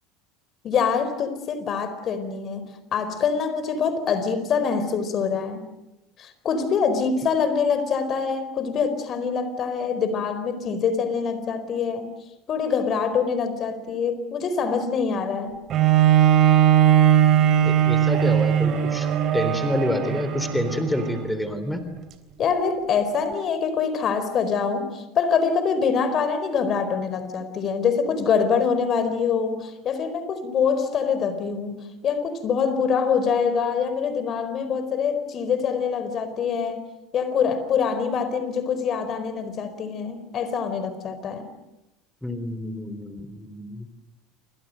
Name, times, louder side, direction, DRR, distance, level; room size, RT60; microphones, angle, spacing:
voice 1, 0.6-5.6 6.2-12.1 12.5-15.6 22.4-36.9 37.1-41.5, left 6 dB, 45° left, 11 dB, 4.5 m, -25 dB
Bowed string instrument, 15.7-21.3 22.0-22.1, right 11 dB, 45° right, 3.5 m, -19 dB
voice 2, 17.6-19.1 19.3-21.8 42.2-43.9, left 1 dB, 5° left, 10 dB, 3.7 m, -28 dB
28.5 x 25.5 x 6.6 m, 0.95 s
hypercardioid pair, 75°, 0 cm